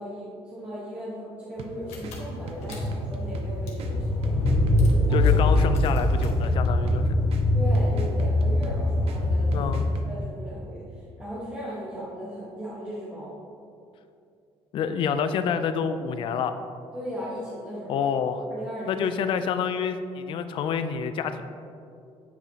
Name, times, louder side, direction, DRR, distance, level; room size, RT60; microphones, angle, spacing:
voice 1, 0.0-4.4 5.0-5.3 7.5-9.8 10.0-13.4 16.9-18.1 18.5-19.1, equal, 15° right, -10 dB, 1.2 m, -37 dB
Car / Engine, 1.6-1.7 1.9-10.3, left 1 dB, 75° left, 1.4 m, -23 dB
sound 1, 1.6-10.1, right 4 dB, 60° right, 0.6 m, -42 dB
voice 2, 5.1-7.2 9.5-9.9 14.7-16.6 17.9-18.4 18.9-21.4, left 7 dB, 50° left, 9 dB, 0.4 m, -27 dB
9.3 x 4.9 x 2.8 m, 2.5 s
cardioid pair, 165°, 11 cm